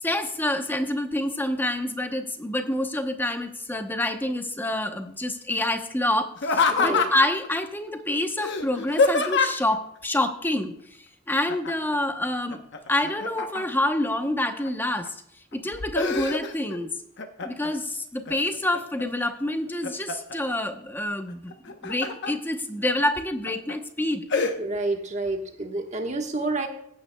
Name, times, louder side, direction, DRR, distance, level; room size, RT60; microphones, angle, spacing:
voice 1, 0.0-10.8 11.3-12.6 12.9-15.2 15.5-16.9 17.4-24.3, left 1 dB, 10° left, 6 dB, 0.8 m, -27 dB
Laughter, 6.4-7.5 8.4-9.8 11.5-12.0 12.3-13.9 14.4-15.1 15.5-16.8 17.2-17.8 18.3-19.0 19.5-20.4 21.5-22.3 22.8-22.9 23.5-23.7 24.3-24.5, left 4 dB, 60° left, 0.9 m, -26 dB
voice 2, 6.7-7.0 24.6-26.7, right 2 dB, 35° right, 3 dB, 1.3 m, -29 dB
18.0 x 9.2 x 2.2 m, 0.70 s
head